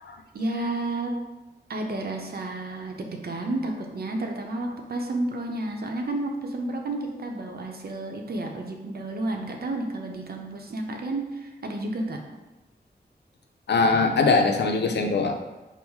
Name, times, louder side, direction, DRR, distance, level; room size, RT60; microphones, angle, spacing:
voice 1, 0.3-1.1 1.7-12.2, right 2 dB, 65° right, 2 dB, 0.7 m, -31 dB
voice 2, 13.7-15.4, left 4 dB, 85° left, 5 dB, 0.5 m, -22 dB
5.5 x 2.1 x 4.5 m, 1.1 s
wide cardioid pair, 135°, 17 cm